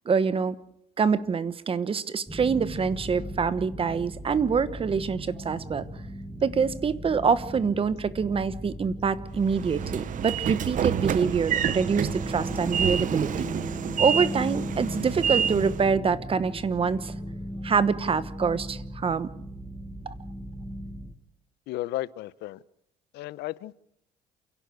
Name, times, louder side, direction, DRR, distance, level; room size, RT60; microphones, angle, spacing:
voice 1, 0.1-0.6 1.0-5.9 6.4-13.5 14.0-17.1 17.6-19.3, right 6 dB, 35° right, 1.1 m, -25 dB
sound 1, 2.3-21.1, equal, 5° right, 1.5 m, -37 dB
Train / Sliding door, 9.4-15.9, right 9 dB, 50° right, 0.8 m, -29 dB
voice 2, 21.7-22.6 23.1-23.8, left 15 dB, 80° left, 0.7 m, -34 dB
28.5 x 11.5 x 8.2 m
cardioid pair, 110°, 17 cm